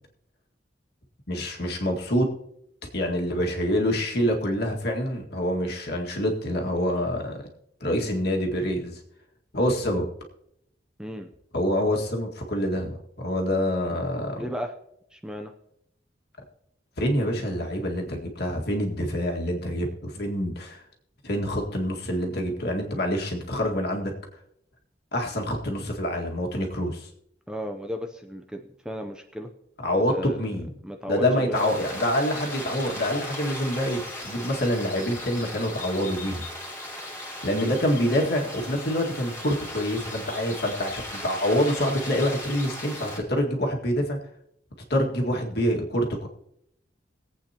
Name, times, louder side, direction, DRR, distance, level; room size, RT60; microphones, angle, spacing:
voice 1, 1.3-2.3 2.9-7.4 7.8-9.0 9.5-10.1 11.5-14.4 17.0-20.8 21.2-24.1 25.1-27.1 29.8-30.7 31.1-36.4 37.4-44.2 44.9-46.3, equal, 60° left, 0 dB, 1.9 m, -26 dB
voice 2, 11.0-11.3 14.4-14.7 15.1-15.5 27.5-29.5 30.1-30.5 30.8-31.8 37.5-37.7, equal, 5° right, 5 dB, 0.6 m, -35 dB
sound 1, 31.5-43.2, left 1 dB, 15° left, 2.5 m, -37 dB
21.5 x 8.3 x 2.9 m, 0.77 s
head